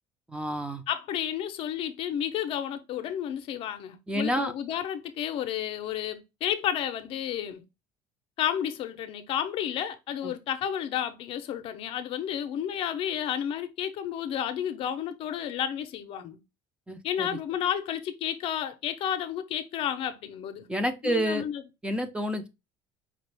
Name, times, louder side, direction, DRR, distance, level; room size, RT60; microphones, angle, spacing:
voice 1, 0.3-0.8 4.1-4.5 10.2-10.3 16.9-17.3 20.7-21.4 21.8-22.5, equal, 10° right, 0.6 m, -29 dB
voice 2, 0.9-7.6 8.4-16.4 17.0-20.7 21.0-21.6, left 10 dB, 55° left, 0.6 m, -31 dB
5.1 x 2.4 x 3.3 m
cardioid pair, 125°, 11 cm